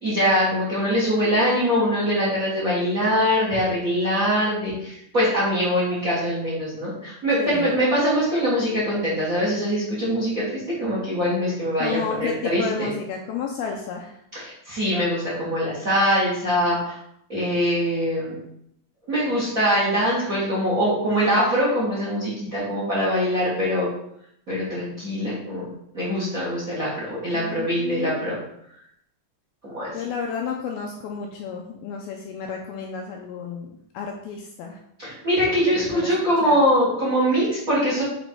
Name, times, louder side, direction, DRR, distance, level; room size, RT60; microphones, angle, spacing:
voice 1, 0.0-12.9 14.3-17.0 17.3-18.3 19.1-23.9 24.5-28.4 29.6-30.1 35.0-38.0, equal, 60° right, -7 dB, 0.9 m, -23 dB
voice 2, 7.4-7.7 11.8-14.2 27.3-28.3 29.9-34.8 35.7-36.1 36.4-36.6, left 6 dB, 85° left, 1 dB, 2.2 m, -32 dB
6.8 x 4.0 x 4.6 m, 0.74 s
omnidirectional pair, 4.9 m